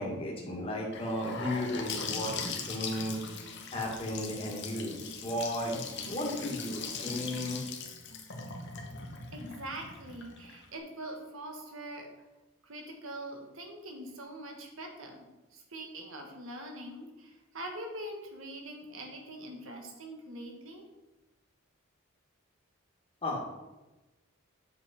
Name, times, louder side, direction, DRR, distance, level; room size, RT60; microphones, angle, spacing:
voice 1, 0.0-3.2 3.7-5.8 6.1-7.6 23.2-23.4, left 1 dB, 25° left, -2 dB, 1.9 m, -34 dB
Gurgling / Sink (filling or washing) / Bathtub (filling or washing), 0.9-10.8, left 5 dB, 55° left, 1.2 m, -40 dB
voice 2, 9.3-12.1 12.6-20.9, right 1 dB, 65° right, 3 dB, 1.6 m, -43 dB
8.1 x 6.9 x 4.4 m, 1.1 s
head